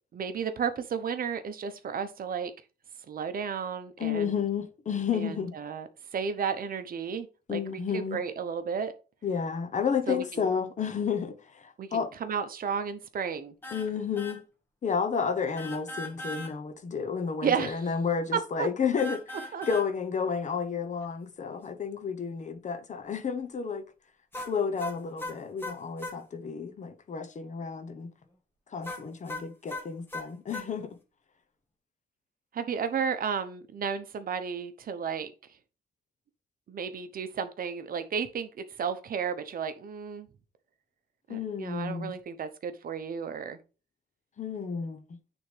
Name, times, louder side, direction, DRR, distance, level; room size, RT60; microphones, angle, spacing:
voice 1, 0.1-2.5 3.1-4.3 5.1-8.9 10.1-10.5 11.8-13.5 17.4-17.9 18.3-18.7 19.5-19.7 32.5-35.3 36.7-40.3 41.3-43.6, right 6 dB, 55° right, 0.9 m, -33 dB
voice 2, 4.0-5.5 7.5-8.2 9.2-12.1 13.7-14.4 14.8-19.4 19.7-23.9 24.5-28.1 28.7-31.0 41.3-42.1 44.4-45.0, left 6 dB, 45° left, 1.0 m, -31 dB
sound 1, 13.6-13.9 14.2-14.4 15.6-16.5 19.0-19.9 24.3-26.2 28.8-30.7, left 1 dB, 10° left, 1.5 m, -38 dB
9.5 x 3.6 x 3.4 m
cardioid pair, 125°, 17 cm